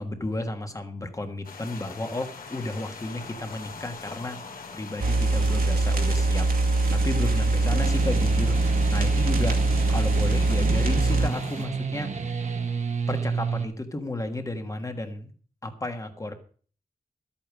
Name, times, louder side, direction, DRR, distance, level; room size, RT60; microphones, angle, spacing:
voice 1, 0.0-4.4 4.7-9.6 9.9-12.1 13.1-15.3 15.6-16.3, left 2 dB, 20° left, 6 dB, 1.5 m, -33 dB
sound 1, 1.4-11.7, left 5 dB, 75° left, 2.7 m, -43 dB
sound 2, 5.0-11.3, right 2 dB, 70° right, 2.5 m, -23 dB
sound 3, 7.8-13.6, right 5 dB, 50° right, 1.2 m, -31 dB
13.0 x 8.8 x 6.1 m, 0.43 s
wide cardioid pair, 180°, 15 cm